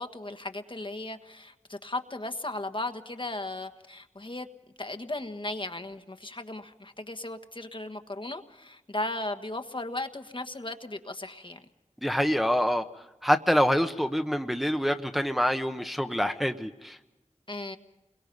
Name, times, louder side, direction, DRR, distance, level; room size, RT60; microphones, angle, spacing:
voice 1, 0.0-4.5 4.8-11.6 17.5-17.8, left 2 dB, 45° left, 7 dB, 1.4 m, -36 dB
voice 2, 12.0-12.8 13.2-17.0, equal, ahead, 6 dB, 1.0 m, -26 dB
29.0 x 22.5 x 5.4 m, 1.0 s
wide cardioid pair, 45°, 12 cm